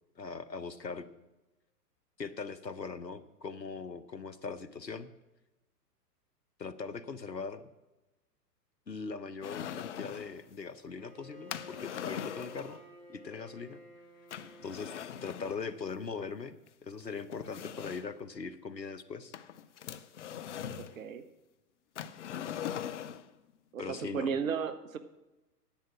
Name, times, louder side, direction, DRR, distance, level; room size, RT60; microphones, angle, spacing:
voice 1, 0.2-1.0 2.2-5.1 6.6-7.6 8.9-12.8 13.1-13.8 14.6-14.9 15.2-19.3 23.8-24.4, left 5 dB, 90° left, 14 dB, 0.9 m, -40 dB
sound 1, 9.4-10.4 11.5-12.8 14.3-15.6 16.7-16.8 17.3-18.2 19.3-21.0 22.0-23.3, left 9 dB, 45° left, 0.6 m, -41 dB
Bowed string instrument, 10.9-15.7, left 1 dB, ahead, 3.7 m, -52 dB
voice 2, 20.9-21.2 23.7-25.0, right 6 dB, 55° right, 12 dB, 0.9 m, -34 dB
10.0 x 8.8 x 6.1 m, 1.0 s
figure-of-eight pair, 110°, 49 cm